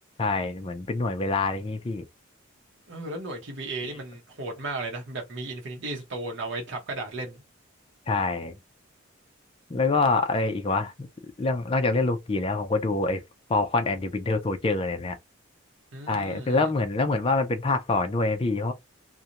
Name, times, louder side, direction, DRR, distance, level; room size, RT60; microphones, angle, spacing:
voice 1, 0.2-2.0 3.8-4.0 8.1-8.5 9.7-10.9 11.4-13.2 13.5-15.2 16.1-18.7, left 3 dB, 25° left, 0.4 m, -25 dB
voice 2, 2.9-7.4 15.9-16.7, right 2 dB, 60° right, 0.7 m, -35 dB
2.5 x 2.1 x 2.8 m
head